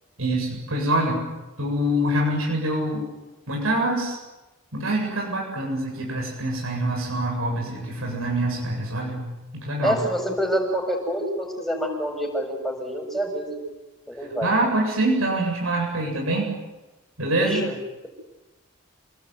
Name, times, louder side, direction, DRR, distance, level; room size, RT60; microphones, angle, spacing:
voice 1, 0.2-1.2 1.6-3.0 3.5-4.2 4.7-9.2 9.6-10.0 14.4-16.5 17.2-17.6, right 1 dB, 85° right, -1 dB, 7.9 m, -25 dB
voice 2, 9.8-13.6 14.1-14.5 17.4-17.8, equal, ahead, 1 dB, 7.4 m, -27 dB
30.0 x 20.0 x 9.5 m, 1.1 s
head